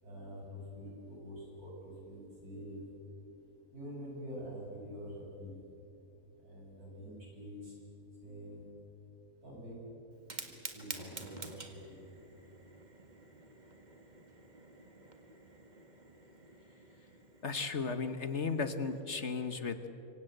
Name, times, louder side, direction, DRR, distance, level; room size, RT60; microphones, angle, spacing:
voice 1, 0.0-2.8 3.7-5.6 6.4-7.7 8.2-8.6 9.4-9.8 10.3-11.9, equal, 75° right, -3 dB, 8.3 m, -46 dB
Fire, 10.1-19.0, right 2 dB, 30° right, 2.1 m, -50 dB
voice 2, 17.4-19.9, left 4 dB, 50° left, 10 dB, 1.4 m, -35 dB
27.0 x 24.5 x 7.9 m, 2.9 s
omnidirectional pair, 1.6 m